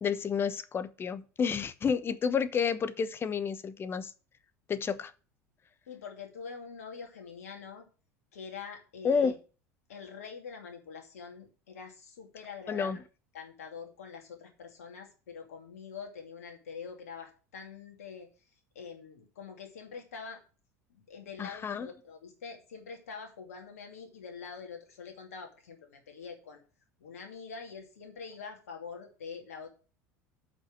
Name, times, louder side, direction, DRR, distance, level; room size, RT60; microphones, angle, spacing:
voice 1, 0.0-4.1 4.7-5.1 9.0-9.3 12.7-13.0 21.4-21.9, left 6 dB, 25° left, 1.0 m, -30 dB
voice 2, 5.9-7.9 8.3-9.4 9.9-13.0 13.3-18.3 18.7-20.4 20.9-26.6 27.0-29.7, left 5 dB, 70° left, 2.6 m, -45 dB
8.1 x 5.8 x 7.4 m
figure-of-eight pair, 70°, 8 cm